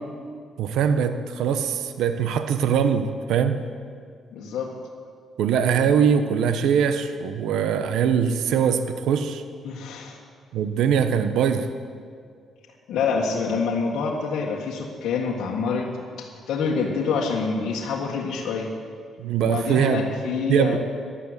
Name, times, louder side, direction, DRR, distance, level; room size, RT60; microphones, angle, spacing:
voice 1, 0.6-3.6 5.4-9.4 10.5-11.7 19.2-20.1 20.5-20.8, right 7 dB, 80° right, 9 dB, 0.9 m, -22 dB
voice 2, 4.3-4.7 9.6-10.2 12.9-15.9 16.2-18.7 19.4-20.8, left 5 dB, 75° left, -3 dB, 1.8 m, -26 dB
14.0 x 11.5 x 8.2 m, 2.1 s
cardioid pair, 90°, 0 cm